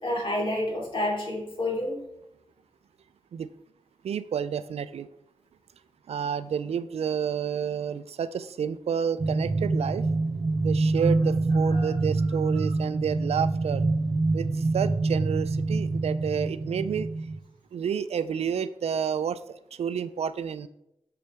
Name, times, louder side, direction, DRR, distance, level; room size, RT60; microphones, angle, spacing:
voice 1, 0.0-2.0 11.7-11.9, left 1 dB, 55° left, 3.2 m, -29 dB
voice 2, 4.0-5.1 6.1-10.1 10.6-13.8 14.3-17.1 17.7-20.7, right 7 dB, 85° right, 0.4 m, -30 dB
sound 1, 9.2-17.4, right 3 dB, 35° right, 0.6 m, -26 dB
8.3 x 6.8 x 3.4 m
wide cardioid pair, 85°, 10 cm